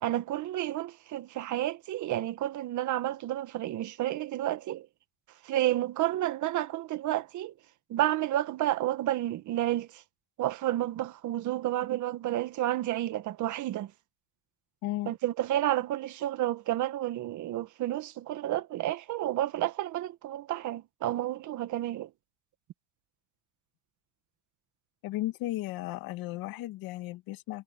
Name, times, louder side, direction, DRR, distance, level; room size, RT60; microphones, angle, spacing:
voice 1, 0.0-4.9 5.4-7.5 7.9-10.0 10.4-13.9 15.1-22.1, right 14 dB, 50° right, 1.7 m, -30 dB
voice 2, 14.8-15.1 25.0-27.6, left 16 dB, 60° left, 2.1 m, -35 dB
cardioid pair, 135°, 38 cm